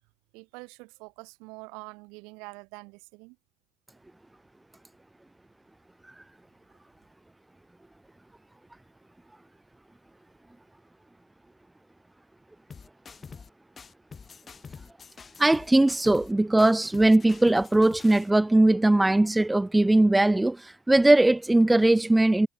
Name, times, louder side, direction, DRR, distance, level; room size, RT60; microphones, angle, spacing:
voice 1, 0.3-3.4, right 29 dB, 85° right, 4.2 m, -45 dB
sound 1, 12.7-13.5 13.8-16.3 16.6-18.3, left 5 dB, 35° left, 5.3 m, -46 dB
voice 2, 15.4-22.5, right 2 dB, 10° right, 0.4 m, -20 dB
supercardioid pair, 75°, 0 cm